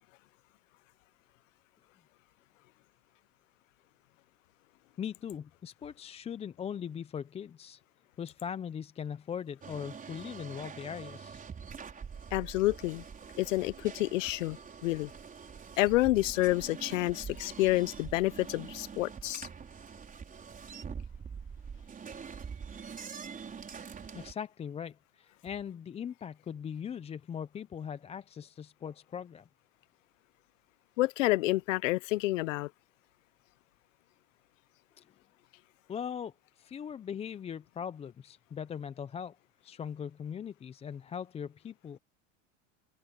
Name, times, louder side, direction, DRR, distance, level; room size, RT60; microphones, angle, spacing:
voice 1, 5.0-7.8 8.2-11.4 24.1-29.5 35.0-35.1 35.9-39.4 39.6-42.0, left 8 dB, 15° left, 0.5 m, -40 dB
sound 1, 9.6-24.3, right 6 dB, 20° right, 5.0 m, -45 dB
voice 2, 12.3-13.0 13.4-15.1 15.8-19.5 31.0-32.7, left 18 dB, 80° left, 0.8 m, -29 dB
supercardioid pair, 120°, 38 cm